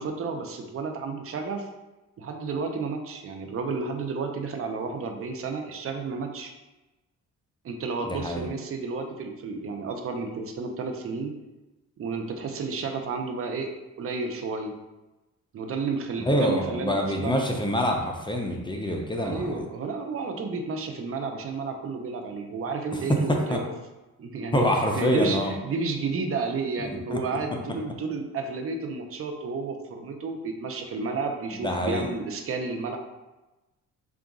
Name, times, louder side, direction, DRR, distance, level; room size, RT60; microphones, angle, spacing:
voice 1, 0.0-1.7 2.2-6.5 7.6-11.3 12.0-13.7 14.0-14.7 15.5-17.4 19.2-23.7 24.2-33.0, right 4 dB, 50° right, 4 dB, 0.6 m, -31 dB
voice 2, 8.0-8.5 16.3-19.7 22.9-23.6 24.5-25.5 26.8-27.2 31.6-32.1, equal, 15° left, 1 dB, 0.5 m, -26 dB
3.9 x 2.4 x 3.6 m, 1.1 s
cardioid pair, 90°, 30 cm